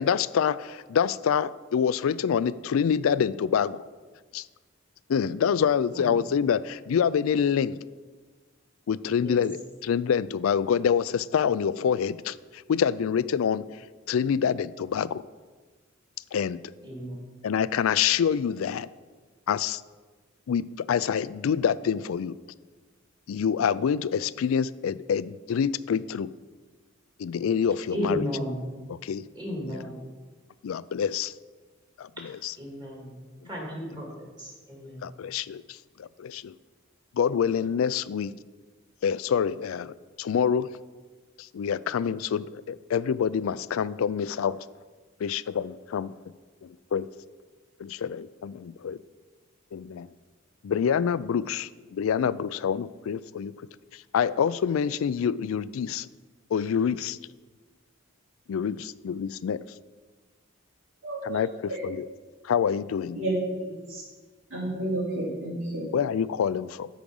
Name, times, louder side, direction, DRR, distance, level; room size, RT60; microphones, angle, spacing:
voice 1, 0.0-3.8 4.3-4.4 5.1-7.8 8.9-13.6 14.1-15.2 16.3-16.6 17.4-18.9 19.5-19.8 20.5-22.4 23.3-26.3 27.2-28.2 29.0-29.2 30.6-31.3 32.0-32.5 35.0-36.6 37.1-38.3 39.0-40.8 41.4-44.6 45.2-46.1 46.6-47.1 47.8-49.0 49.7-50.1 50.6-53.5 53.9-56.1 56.5-57.2 58.5-59.6 61.2-62.1 62.4-63.2 65.9-66.9, left 7 dB, 85° left, 17 dB, 0.3 m, -26 dB
voice 2, 16.8-17.2 27.9-28.6 29.3-30.0 32.6-33.2 33.4-34.1 34.4-35.0, equal, 20° right, -3 dB, 2.7 m, -33 dB
voice 3, 61.0-61.4 61.7-61.8 63.1-64.0 64.5-65.9, right 1 dB, 70° right, -8 dB, 2.9 m, -31 dB
13.0 x 5.1 x 5.3 m, 1.4 s
head